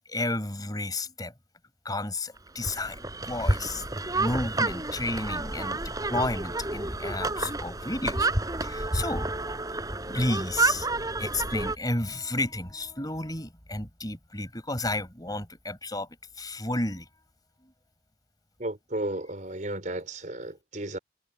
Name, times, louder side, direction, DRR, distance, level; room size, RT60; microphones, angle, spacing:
voice 1, 0.1-1.3 1.8-3.8 4.1-5.8 6.0-8.3 8.6-9.6 10.1-10.9 11.2-16.1 16.4-17.1 17.6-17.7, left 2 dB, 20° left, 6.0 m, -32 dB
sound 1, 2.6-11.8, right 2 dB, 20° right, 6.8 m, -30 dB
voice 2, 18.6-21.0, right 1 dB, 45° right, 4.5 m, -34 dB
head